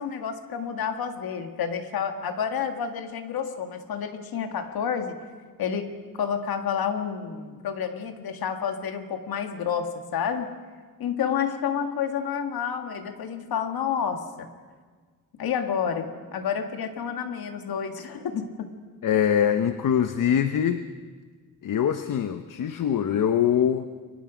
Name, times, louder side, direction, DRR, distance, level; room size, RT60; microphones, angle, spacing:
voice 1, 0.0-5.2 5.6-10.5 11.0-14.5 15.4-18.7, left 7 dB, 85° left, 6 dB, 1.9 m, -29 dB
voice 2, 19.0-20.8 21.6-23.9, left 9 dB, 60° left, 9 dB, 0.9 m, -23 dB
29.5 x 23.5 x 5.1 m, 1.5 s
wide cardioid pair, 160°, 35 cm